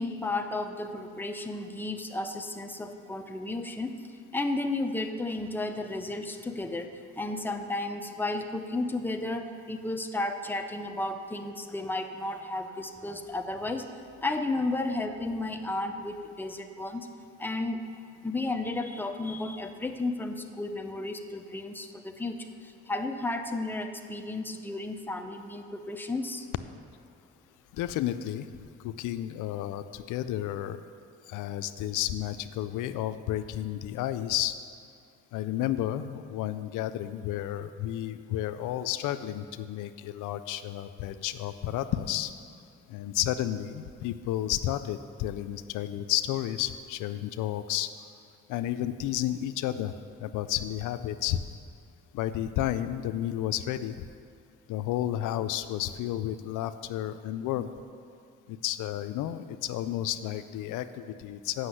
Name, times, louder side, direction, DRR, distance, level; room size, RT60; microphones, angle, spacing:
voice 1, 0.0-4.0 4.3-13.9 14.2-17.1 17.4-17.8 18.2-26.5, left 2 dB, 5° left, 5 dB, 0.7 m, -33 dB
voice 2, 27.7-28.5 28.8-30.8 31.3-34.6 35.3-42.3 42.9-47.9 48.5-49.9 50.2-51.4 52.1-54.1 54.7-57.7 58.5-61.7, left 12 dB, 85° left, 11 dB, 0.5 m, -32 dB
8.0 x 6.1 x 7.8 m, 2.4 s
cardioid pair, 90°, 30 cm